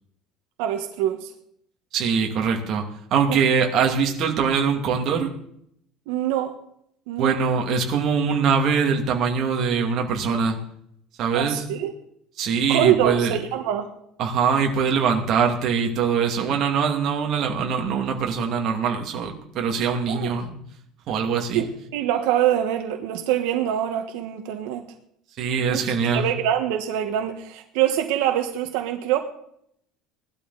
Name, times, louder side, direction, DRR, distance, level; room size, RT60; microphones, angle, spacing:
voice 1, 0.6-1.3 3.3-3.4 6.1-6.5 7.1-7.4 11.3-11.9 12.7-13.9 20.1-20.3 21.5-21.7 21.9-24.9 25.7-25.8 26.1-29.2, right 11 dB, 85° right, 5 dB, 1.5 m, -24 dB
voice 2, 1.9-5.3 7.2-10.6 11.2-11.6 12.4-13.4 14.2-20.5 21.1-21.6 25.4-26.3, right 6 dB, 45° right, 2 dB, 2.5 m, -23 dB
18.0 x 12.0 x 4.2 m, 0.70 s
cardioid pair, 160°, 0 cm